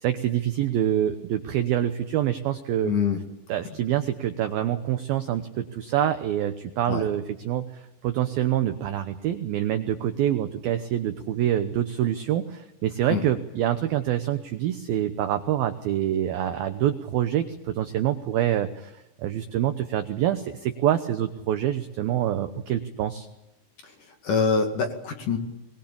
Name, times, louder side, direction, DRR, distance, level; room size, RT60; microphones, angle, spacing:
voice 1, 0.0-2.9 3.5-23.3, right 11 dB, 80° right, 9 dB, 2.2 m, -26 dB
voice 2, 2.8-3.2 6.9-7.1 13.1-13.2 23.8-23.9 24.2-25.4, left 5 dB, 50° left, 4 dB, 3.2 m, -24 dB
23.0 x 20.5 x 8.7 m, 0.91 s
omnidirectional pair, 5.6 m